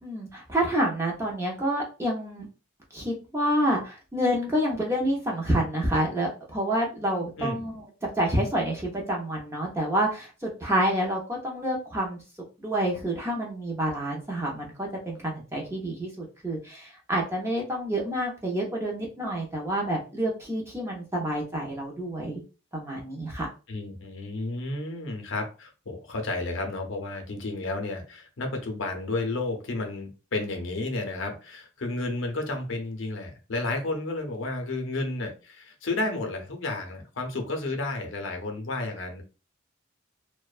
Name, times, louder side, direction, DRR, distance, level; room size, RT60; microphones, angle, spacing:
voice 1, 0.0-2.5 2.9-7.8 8.2-12.2 12.6-22.4 22.7-23.5, right 1 dB, 10° right, 0.5 m, -28 dB
voice 2, 23.7-39.2, left 2 dB, 65° left, 0.6 m, -32 dB
2.4 x 2.1 x 2.3 m
head